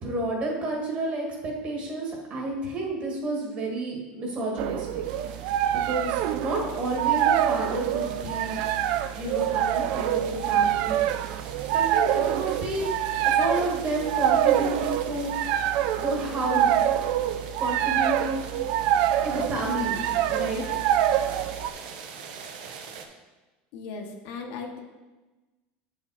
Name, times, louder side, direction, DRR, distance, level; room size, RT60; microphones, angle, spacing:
voice 1, 0.0-5.0 5.7-8.6 9.1-11.0 11.7-12.9 13.2-15.6 15.9-16.9 17.6-18.4 19.2-20.0 20.3-20.6, right 2 dB, 30° right, -1 dB, 1.5 m, -30 dB
sound 1, 4.6-21.7, right 11 dB, 50° right, 0.3 m, -25 dB
sound 2, 5.0-23.0, right 6 dB, 80° right, 0.9 m, -44 dB
voice 2, 23.7-24.8, left 4 dB, 55° left, 2 dB, 1.0 m, -37 dB
8.5 x 5.1 x 4.1 m, 1.2 s
cardioid pair, 175°, 5 cm